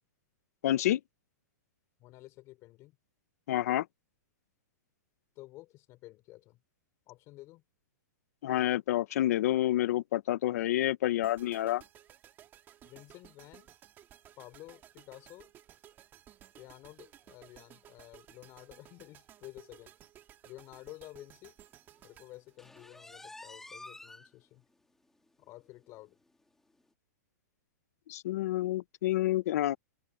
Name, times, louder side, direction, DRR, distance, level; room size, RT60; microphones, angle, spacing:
voice 1, 0.6-1.0 3.5-3.9 8.4-11.8 28.1-29.8, left 14 dB, 60° left, 0.9 m, -28 dB
voice 2, 2.0-3.0 5.4-6.6 7.1-7.6 12.8-13.8 14.4-15.5 16.6-19.9 20.4-21.6 22.0-24.6 25.4-26.2, left 18 dB, 30° left, 4.0 m, -51 dB
sound 1, 11.2-23.4, right 11 dB, 20° right, 1.9 m, -57 dB
sound 2, 22.6-24.3 24.7-24.8 25.3-25.4 25.8-25.9 26.8-26.9, left 2 dB, 5° left, 2.2 m, -49 dB
open air
hypercardioid pair, 160°, 10 cm